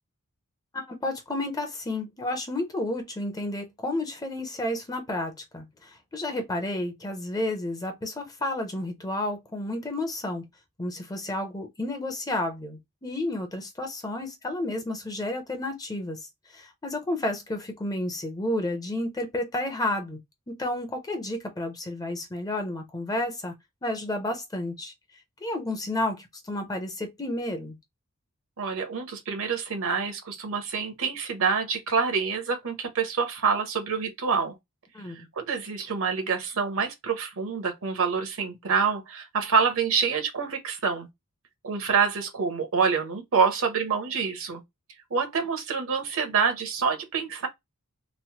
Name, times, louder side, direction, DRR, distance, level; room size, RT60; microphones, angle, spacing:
voice 1, 0.7-10.4 10.8-16.2 16.5-20.2 20.5-23.5 23.8-24.9 25.4-27.8 34.9-35.3, left 1 dB, 15° left, 0.6 m, -31 dB
voice 2, 28.6-34.5 35.1-41.1 41.6-44.6 45.1-47.5, right 5 dB, 65° right, 0.8 m, -26 dB
3.1 x 2.1 x 2.8 m
head